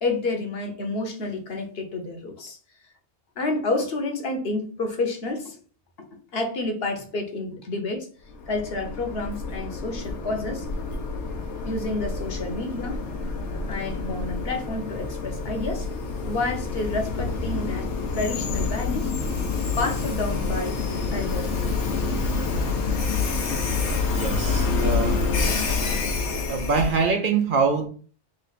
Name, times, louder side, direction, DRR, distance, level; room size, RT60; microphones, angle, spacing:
voice 1, 0.0-2.6 3.4-5.6 6.0-6.1 6.3-8.1 8.5-10.7 11.6-13.1 13.7-15.9 16.2-17.9 18.1-19.1 19.8-20.8 21.1-21.7, left 2 dB, 65° left, 1.1 m, -29 dB
Train, 8.3-27.1, left 4 dB, 90° left, 1.1 m, -27 dB
voice 2, 24.0-25.2 26.5-27.9, right 5 dB, 55° right, 0.7 m, -24 dB
3.2 x 3.2 x 4.0 m
omnidirectional pair, 1.1 m